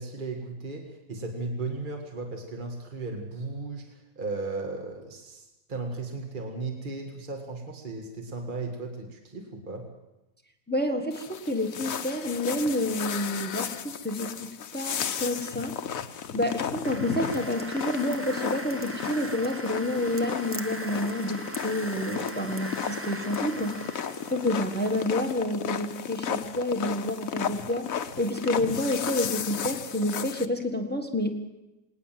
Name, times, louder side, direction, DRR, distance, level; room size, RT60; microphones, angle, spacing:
voice 1, 0.0-9.9, right 3 dB, 35° right, 2 dB, 2.1 m, -36 dB
voice 2, 10.7-15.8 16.3-23.8 24.3-31.4, left 1 dB, 5° left, 4 dB, 1.6 m, -29 dB
sound 1, 11.1-30.5, left 7 dB, 70° left, 1.3 m, -34 dB
sound 2, 16.8-25.1, right 1 dB, 10° right, 0.9 m, -40 dB
19.5 x 19.0 x 7.6 m, 0.96 s
omnidirectional pair, 1.5 m